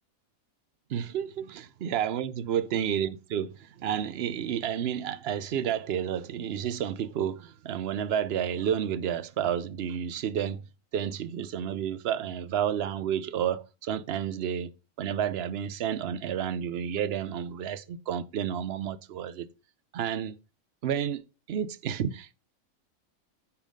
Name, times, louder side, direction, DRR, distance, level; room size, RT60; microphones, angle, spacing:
voice 1, 0.9-10.6 10.9-14.7 15.0-19.5 19.9-20.4 20.8-22.4, right 9 dB, 55° right, 0.8 m, -31 dB
10.0 x 5.8 x 5.2 m
omnidirectional pair, 1.4 m